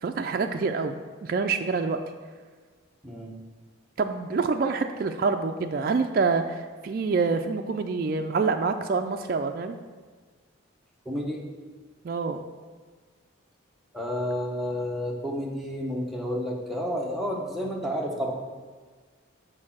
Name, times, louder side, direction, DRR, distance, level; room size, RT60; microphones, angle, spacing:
voice 1, 0.0-2.0 4.0-9.8 12.0-12.5, right 4 dB, 45° right, 4 dB, 0.3 m, -26 dB
voice 2, 3.0-3.4 11.0-11.4 13.9-18.3, equal, ahead, -2 dB, 0.9 m, -30 dB
6.4 x 4.7 x 6.0 m, 1.5 s
head